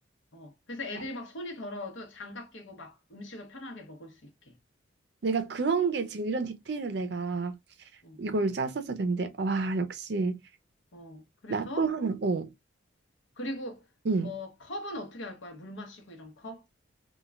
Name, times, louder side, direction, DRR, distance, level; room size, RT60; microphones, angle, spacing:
voice 1, 0.3-4.6 8.0-8.2 10.9-11.9 13.4-13.9 14.2-16.6, left 1 dB, 80° left, 0.8 m, -40 dB
voice 2, 5.2-7.5 8.2-10.4 11.5-12.5 14.1-14.3, right 4 dB, 60° right, 0.4 m, -29 dB
3.1 x 2.2 x 2.2 m
head